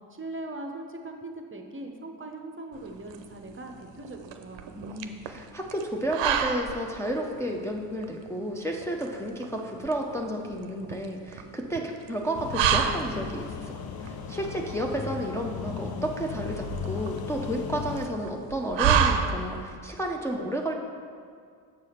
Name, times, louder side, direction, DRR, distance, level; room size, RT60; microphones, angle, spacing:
voice 1, 0.1-4.6, right 2 dB, 30° right, 3 dB, 0.7 m, -40 dB
sound 1, 2.7-19.8, right 7 dB, 70° right, 0.6 m, -31 dB
voice 2, 4.7-20.7, right 1 dB, 5° left, -1 dB, 0.6 m, -32 dB
sound 2, 12.3-18.1, left 7 dB, 55° left, 0.6 m, -36 dB
7.3 x 4.8 x 4.3 m, 2.2 s
supercardioid pair, 60°, 45 cm